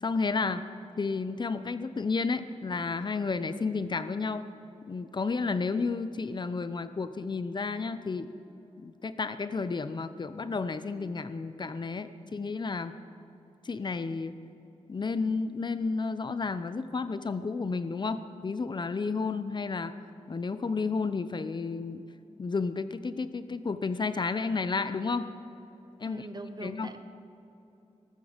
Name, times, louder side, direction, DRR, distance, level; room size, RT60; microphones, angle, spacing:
voice 1, 0.0-0.6 1.0-4.4 4.9-8.3 8.8-13.0 13.6-14.4 14.9-20.0 20.3-22.0 22.4-25.3 26.0-26.3 26.6-26.9, left 4 dB, 40° left, 12 dB, 0.7 m, -31 dB
voice 2, 26.0-27.0, right 3 dB, 35° right, 9 dB, 1.0 m, -41 dB
18.5 x 14.0 x 5.2 m, 2.9 s
wide cardioid pair, 125°, 12 cm